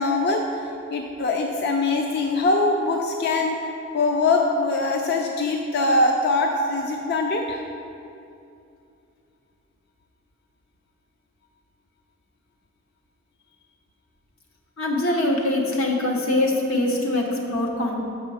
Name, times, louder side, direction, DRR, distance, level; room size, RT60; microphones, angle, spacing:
voice 1, 0.0-3.6 3.9-7.6, left 2 dB, 55° left, 2 dB, 0.4 m, -22 dB
voice 2, 14.8-18.0, left 1 dB, 90° left, 0 dB, 1.1 m, -23 dB
6.6 x 5.7 x 4.8 m, 2.6 s
head